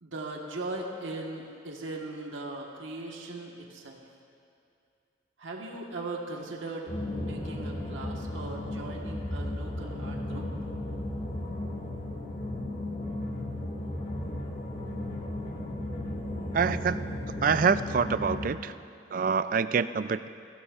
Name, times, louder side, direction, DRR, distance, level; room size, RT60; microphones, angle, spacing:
voice 1, 0.0-4.0 5.4-6.9 7.3-10.5, right 2 dB, 80° right, 0 dB, 1.5 m, -39 dB
sound 1, 6.9-18.5, left 1 dB, 40° left, 1.9 m, -35 dB
voice 2, 16.5-17.2 17.4-18.7 19.1-20.3, right 5 dB, 45° right, 13 dB, 0.3 m, -26 dB
22.5 x 15.0 x 2.5 m, 2.5 s
head